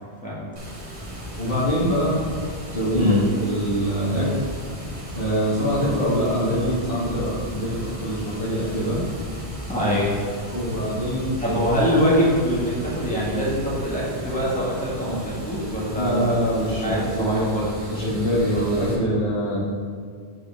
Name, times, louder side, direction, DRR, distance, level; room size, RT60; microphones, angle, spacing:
Water, 0.6-18.9, equal, 85° right, 1.8 m, -35 dB
voice 1, 1.4-2.2 2.7-3.1 3.4-4.4 5.1-9.0 10.5-11.6 15.0-15.2 15.9-17.5 17.9-19.6, equal, 55° left, -7 dB, 1.6 m, -24 dB
voice 2, 2.9-3.3 9.7-10.1 11.4-16.3 16.8-17.7, equal, 5° left, -7 dB, 1.6 m, -23 dB
7.7 x 4.9 x 3.5 m, 2.1 s
omnidirectional pair, 1.1 m